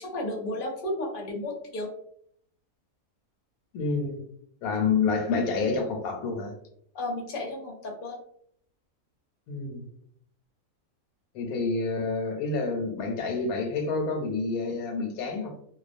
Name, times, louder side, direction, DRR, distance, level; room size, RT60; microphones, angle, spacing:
voice 1, 0.0-1.9 6.9-8.2, left 1 dB, 50° left, -1 dB, 0.6 m, -33 dB
voice 2, 3.7-4.2 4.6-6.5 9.5-9.8 11.3-15.5, left 4 dB, 90° left, 3 dB, 1.1 m, -28 dB
2.3 x 2.2 x 2.5 m, 0.66 s
omnidirectional pair, 1.5 m